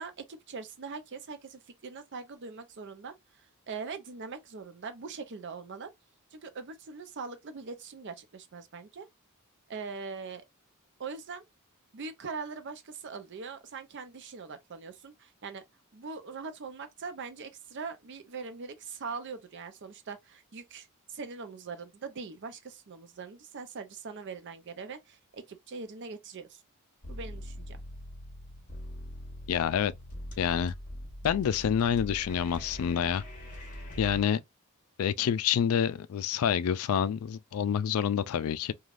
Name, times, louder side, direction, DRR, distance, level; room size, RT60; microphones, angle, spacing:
voice 1, 0.0-5.9 6.3-9.1 9.7-10.4 11.0-11.4 11.9-15.6 15.9-26.6 27.1-27.8, right 4 dB, 55° right, 0.5 m, -42 dB
sound 1, 27.0-34.2, equal, 35° left, 1.0 m, -42 dB
voice 2, 29.5-29.9 30.4-30.7 31.2-33.2 34.0-34.4 35.0-38.7, left 8 dB, 70° left, 0.3 m, -27 dB
3.2 x 2.3 x 2.4 m
head